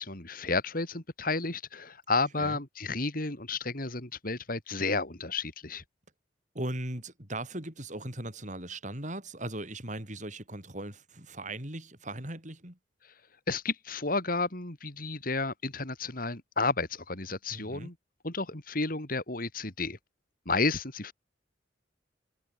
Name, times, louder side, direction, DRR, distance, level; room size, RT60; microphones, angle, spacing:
voice 1, 0.0-5.8 13.5-17.9 18.2-20.0 20.4-21.1, left 3 dB, 50° left, 3.3 m, -32 dB
voice 2, 6.5-12.8 17.5-17.9, right 1 dB, 40° right, 6.6 m, -38 dB
head